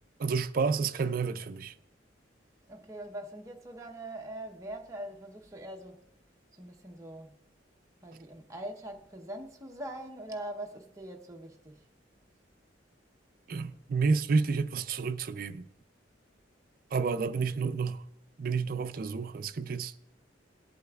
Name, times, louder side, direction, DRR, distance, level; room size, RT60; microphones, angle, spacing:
voice 1, 0.2-1.7 13.5-15.7 16.9-18.0 18.4-19.9, right 4 dB, 50° right, 0.4 m, -30 dB
voice 2, 2.7-6.1 6.5-7.3 8.0-11.8, right 1 dB, 15° right, 0.8 m, -42 dB
18.0 x 8.2 x 2.3 m
head